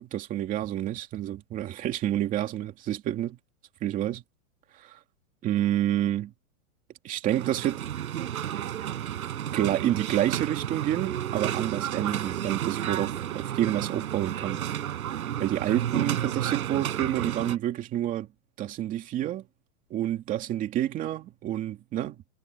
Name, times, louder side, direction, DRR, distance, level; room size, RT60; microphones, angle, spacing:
voice 1, 0.0-3.4 3.8-4.2 4.7-5.0 5.4-6.3 7.0-7.8 9.5-14.6 15.4-18.3 18.6-19.4 19.9-22.2, right 12 dB, 20° right, 2.5 m, -29 dB
sound 1, 7.2-17.6, right 11 dB, 80° right, 6.1 m, -31 dB
supercardioid pair, 170°, 43 cm